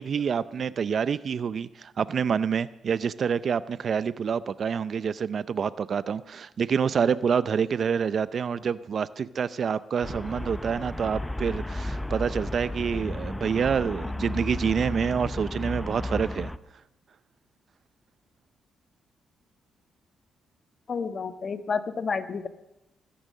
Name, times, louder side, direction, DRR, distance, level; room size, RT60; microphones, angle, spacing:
voice 1, 0.0-16.5, right 6 dB, 55° right, 16 dB, 0.5 m, -27 dB
Traffic noise roadway noise, 10.0-16.6, left 1 dB, 10° left, 0.6 m, -33 dB
voice 2, 20.9-22.5, left 5 dB, 45° left, 9 dB, 1.2 m, -30 dB
21.0 x 10.0 x 6.5 m, 0.92 s
cardioid pair, 90°, 0 cm